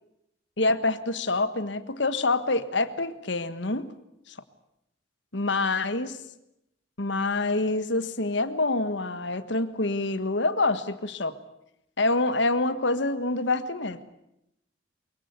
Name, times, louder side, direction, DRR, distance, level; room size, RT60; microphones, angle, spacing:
voice 1, 0.6-3.9 4.3-4.4 5.3-6.2 7.0-11.4 12.0-14.0, left 2 dB, 65° left, 12 dB, 1.5 m, -26 dB
23.5 x 22.5 x 8.1 m, 0.83 s
head